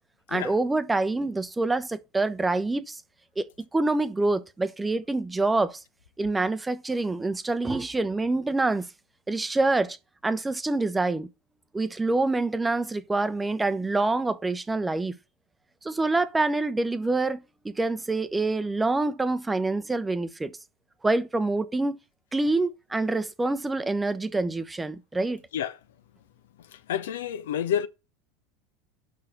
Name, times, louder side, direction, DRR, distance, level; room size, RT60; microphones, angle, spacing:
voice 1, 0.3-3.0 3.4-5.8 6.2-8.9 9.3-10.0 10.2-11.3 11.7-15.2 15.8-20.6 21.0-22.0 22.3-25.4, right 2 dB, 10° right, 0.7 m, -26 dB
voice 2, 26.9-27.9, left 9 dB, 70° left, 0.6 m, -28 dB
5.8 x 4.8 x 5.8 m
figure-of-eight pair, 80°, 0 cm